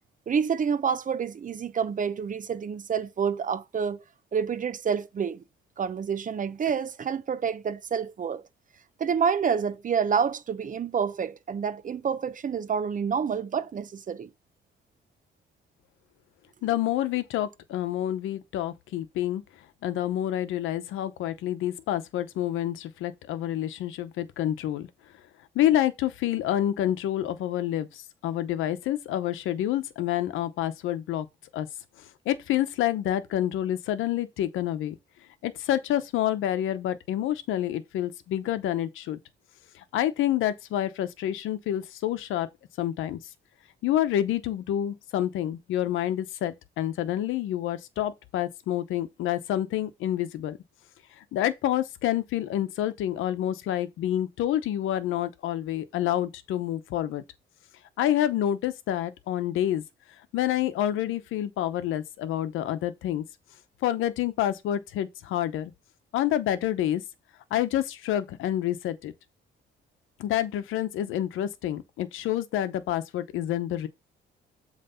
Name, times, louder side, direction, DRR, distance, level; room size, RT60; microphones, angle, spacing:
voice 1, 0.3-4.0 4.3-5.4 5.8-8.4 9.0-14.3, right 7 dB, 40° right, 0.8 m, -28 dB
voice 2, 16.6-19.4 19.8-24.9 25.5-31.3 31.5-31.7 32.0-35.0 35.4-39.2 39.7-42.5 42.8-43.2 43.8-50.6 51.2-57.2 58.0-59.8 60.3-63.2 63.8-65.7 66.1-67.0 67.5-69.1 70.2-73.9, left 12 dB, 85° left, 0.8 m, -28 dB
7.6 x 3.3 x 5.5 m
cardioid pair, 90°, 20 cm